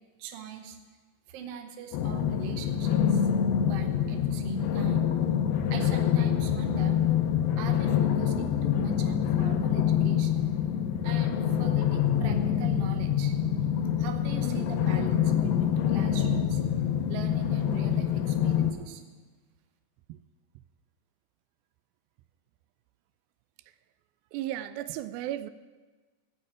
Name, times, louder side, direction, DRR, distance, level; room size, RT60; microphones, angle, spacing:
voice 1, 0.2-0.8 1.3-3.2 3.6-5.1 5.7-7.0 7.6-10.5 11.0-13.3 14.0-16.6 17.1-19.0, right 6 dB, 70° right, 5 dB, 1.5 m, -41 dB
sound 1, 1.9-18.7, left 9 dB, 85° left, 2.7 m, -26 dB
voice 2, 24.3-25.5, right 13 dB, 85° right, 13 dB, 2.4 m, -35 dB
14.5 x 5.6 x 8.8 m, 1.3 s
omnidirectional pair, 4.2 m